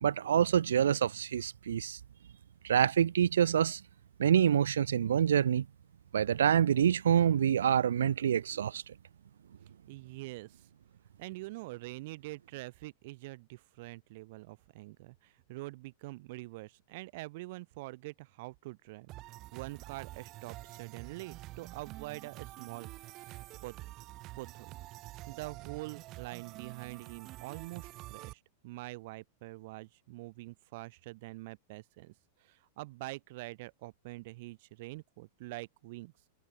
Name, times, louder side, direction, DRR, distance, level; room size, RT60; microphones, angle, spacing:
voice 1, 0.0-2.0 2.6-3.8 4.2-5.7 6.1-8.8, right 9 dB, 90° right, 0.9 m, -26 dB
voice 2, 9.9-10.7 11.2-23.7 24.4-24.7 25.3-32.1 32.4-36.1, right 21 dB, 60° right, 3.6 m, -45 dB
sound 1, 19.1-28.3, right 18 dB, 40° right, 2.8 m, -47 dB
hypercardioid pair, 130°, 0 cm